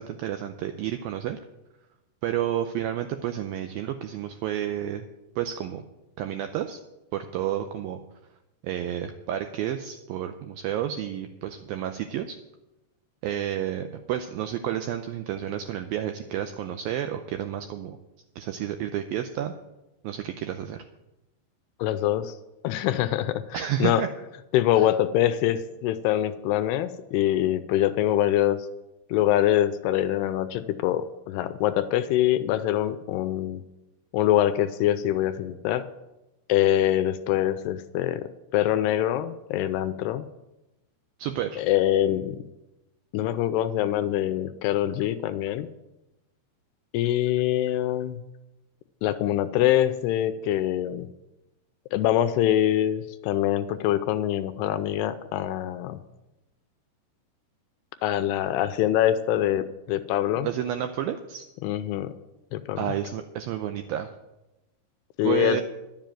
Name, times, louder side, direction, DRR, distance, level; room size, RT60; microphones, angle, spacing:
voice 1, 0.0-1.4 2.2-5.1 5.4-5.8 6.2-6.8 7.1-8.0 8.6-12.4 13.2-18.0 18.4-19.5 20.0-20.9 23.5-24.1 24.8-24.9 41.2-41.6 60.4-61.5 62.8-64.1 65.2-65.6, right 11 dB, 85° right, 7 dB, 2.1 m, -30 dB
voice 2, 21.8-22.3 22.6-24.0 24.5-28.7 29.1-33.6 34.1-35.9 36.5-40.2 41.6-42.4 43.1-45.7 46.9-48.2 49.0-51.1 51.9-56.0 58.0-60.5 61.6-62.1 62.5-62.9 65.2-65.6, left 12 dB, 80° left, 11 dB, 2.5 m, -24 dB
12.0 x 7.5 x 9.0 m, 0.98 s
omnidirectional pair, 4.9 m